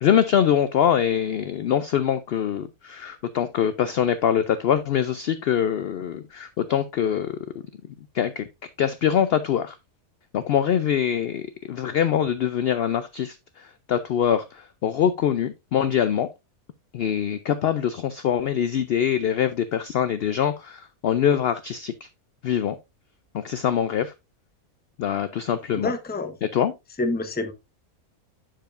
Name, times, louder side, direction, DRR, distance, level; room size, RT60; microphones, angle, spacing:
voice 1, 0.0-7.4 8.1-9.8 10.3-11.4 11.7-16.3 16.9-21.9 22.4-22.8 23.3-24.1 25.0-25.9 26.4-26.7, left 9 dB, 70° left, 0.5 m, -24 dB
voice 2, 25.8-26.3 27.0-27.5, left 2 dB, 10° left, 0.5 m, -27 dB
7.5 x 6.9 x 2.5 m
omnidirectional pair, 1.5 m